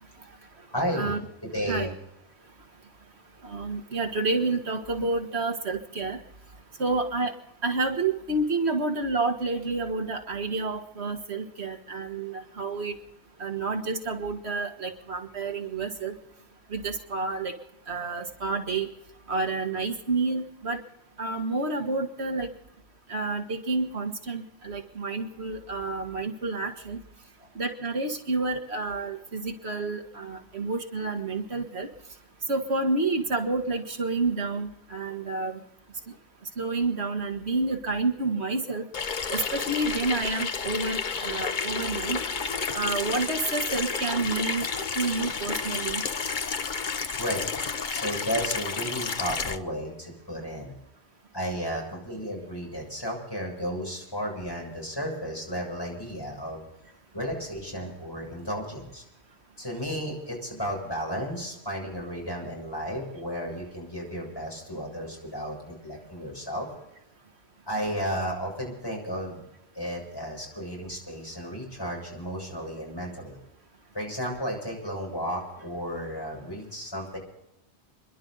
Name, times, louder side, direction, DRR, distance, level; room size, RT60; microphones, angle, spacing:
voice 1, 0.7-1.2 1.4-1.9 47.2-50.7 51.3-56.6 57.1-59.0 59.6-66.7 67.7-69.4 69.7-73.4 73.9-77.2, equal, 20° left, -1 dB, 7.1 m, -33 dB
voice 2, 3.4-6.2 6.8-7.3 7.6-12.9 13.4-16.1 16.7-17.5 17.9-18.9 19.3-20.8 21.2-22.5 23.1-27.0 27.6-31.9 32.5-35.6 36.6-38.8 39.3-42.2 42.7-44.7 44.9-46.0, right 3 dB, 75° right, 5 dB, 1.8 m, -29 dB
Water tap faucet / Sink (filling or washing), 38.9-49.6, left 5 dB, 50° left, 1.0 m, -31 dB
30.0 x 11.5 x 4.0 m, 0.85 s
omnidirectional pair, 1.1 m